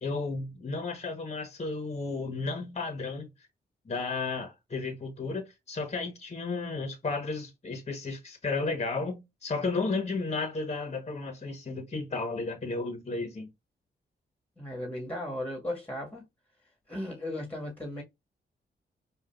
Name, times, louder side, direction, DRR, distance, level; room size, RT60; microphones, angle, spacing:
voice 1, 0.0-3.3 3.8-13.5, left 3 dB, 35° left, 1.1 m, -33 dB
voice 2, 14.6-16.2 16.9-18.0, left 1 dB, 10° left, 1.8 m, -36 dB
4.9 x 2.5 x 2.4 m
cardioid pair, 55°, 20 cm